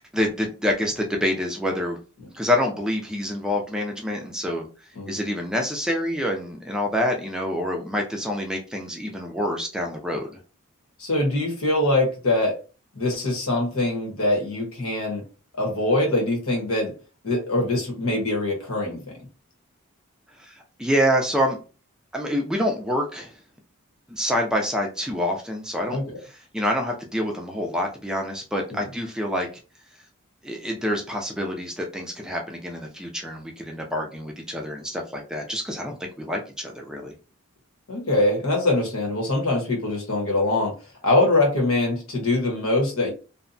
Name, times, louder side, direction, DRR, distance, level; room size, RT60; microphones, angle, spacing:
voice 1, 0.0-2.0 2.3-4.7 5.1-10.4 20.4-21.6 22.1-23.3 24.1-26.0 26.2-29.5 30.4-37.1, equal, 5° right, 1 dB, 0.3 m, -27 dB
voice 2, 11.0-12.5 13.0-15.2 15.6-16.9 17.2-19.2 25.9-26.2 37.9-40.7 41.0-43.1, left 2 dB, 85° left, 0 dB, 1.1 m, -23 dB
2.6 x 2.1 x 2.5 m, 0.34 s
head